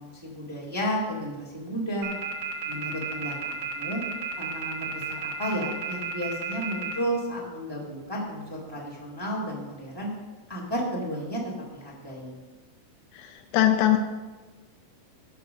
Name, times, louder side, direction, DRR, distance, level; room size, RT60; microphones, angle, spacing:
voice 1, 0.0-2.1 2.7-4.0 4.4-10.1 10.5-11.4 11.7-12.3, equal, 30° right, -4 dB, 0.4 m, -32 dB
sound 1, 2.0-6.9, right 7 dB, 60° right, 1.4 m, -32 dB
voice 2, 13.1-14.0, left 12 dB, 80° left, 5 dB, 2.3 m, -22 dB
12.0 x 5.1 x 6.2 m, 1.3 s
omnidirectional pair, 4.1 m